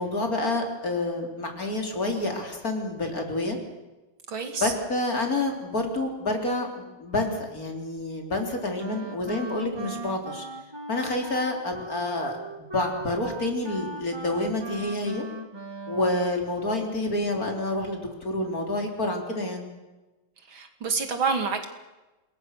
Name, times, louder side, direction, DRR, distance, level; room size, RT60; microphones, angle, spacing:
voice 1, 0.0-3.6 4.6-10.4 10.9-15.3 15.9-19.7, left 2 dB, 45° left, 3 dB, 4.0 m, -28 dB
voice 2, 4.3-4.7 20.5-21.7, right 5 dB, 70° right, 6 dB, 3.1 m, -28 dB
Wind instrument woodwind instrument, 8.8-16.3, right 1 dB, 15° right, 1.5 m, -39 dB
27.0 x 21.0 x 6.6 m, 1.1 s
omnidirectional pair, 2.3 m